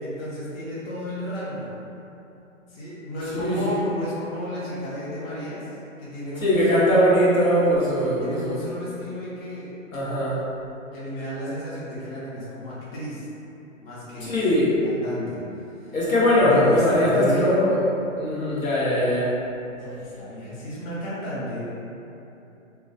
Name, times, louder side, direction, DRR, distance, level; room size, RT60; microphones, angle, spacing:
voice 1, 0.0-1.7 2.7-7.1 7.9-9.7 10.9-13.3 13.8-14.5 14.8-16.0 16.4-17.5 19.7-21.6, equal, 50° left, -9 dB, 0.8 m, -33 dB
voice 2, 3.4-3.8 6.4-8.6 9.9-10.4 14.2-14.8 15.9-17.8 18.1-19.3, left 1 dB, 90° left, -9 dB, 1.0 m, -20 dB
2.2 x 2.1 x 2.6 m, 2.8 s
hypercardioid pair, 140°, 40 cm